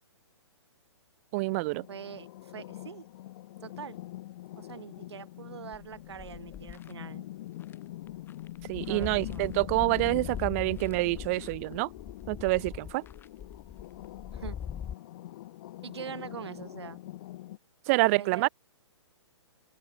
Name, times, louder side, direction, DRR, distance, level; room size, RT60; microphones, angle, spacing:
voice 1, 1.3-1.9 8.7-11.9 12.3-13.0 17.9-18.5, right 25 dB, 30° right, 0.6 m, -27 dB
sound 1, 1.5-17.6, left 15 dB, 40° left, 1.0 m, -44 dB
voice 2, 1.9-3.1 3.6-4.0 4.5-7.3 8.9-9.5 14.3-14.6 15.8-17.0 18.0-18.5, right 8 dB, 65° right, 2.7 m, -43 dB
sound 2, 5.7-6.9 7.6-7.7 8.1-14.9, left 8 dB, 15° left, 2.5 m, -41 dB
open air
figure-of-eight pair, 130°, 15 cm